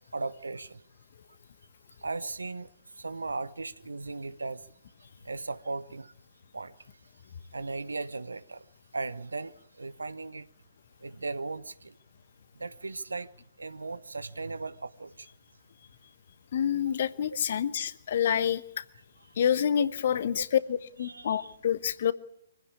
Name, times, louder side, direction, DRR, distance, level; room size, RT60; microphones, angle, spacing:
voice 1, 0.1-0.8 2.0-2.7 3.0-4.6 5.2-6.1 6.5-6.7 7.5-8.6 8.9-10.5 11.0-11.9 12.6-13.3 13.6-15.3 17.4-17.5 20.4-20.5 21.0-21.5, right 3 dB, 80° right, 1.0 m, -37 dB
voice 2, 16.5-18.6 19.4-22.1, left 9 dB, 50° left, 1.0 m, -27 dB
24.0 x 16.0 x 8.4 m
figure-of-eight pair, 130°, 0 cm